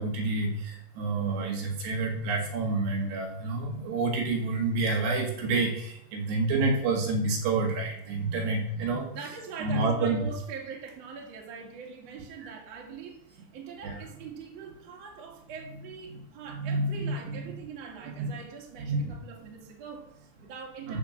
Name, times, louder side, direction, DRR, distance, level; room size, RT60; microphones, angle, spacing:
voice 1, 0.0-9.2 9.6-10.3 12.4-12.5 13.8-14.0 16.1-16.2 16.6-17.6 18.2-18.3 18.9-19.1 20.9-21.0, right 3 dB, 75° right, 0 dB, 4.0 m, -29 dB
voice 2, 9.1-21.0, right 6 dB, 45° right, -1 dB, 2.9 m, -43 dB
13.5 x 5.8 x 6.4 m, 0.69 s
omnidirectional pair, 5.0 m